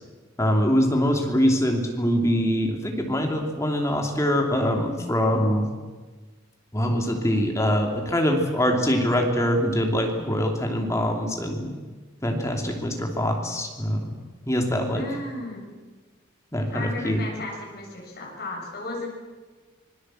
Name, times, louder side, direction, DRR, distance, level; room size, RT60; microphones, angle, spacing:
voice 1, 0.4-5.7 6.7-11.7 12.2-14.1 14.5-15.0 16.5-17.2, equal, 15° left, 2 dB, 2.9 m, -23 dB
voice 2, 14.9-15.7 16.7-19.1, left 2 dB, 50° left, -2 dB, 7.4 m, -34 dB
25.5 x 22.0 x 7.8 m, 1.3 s
head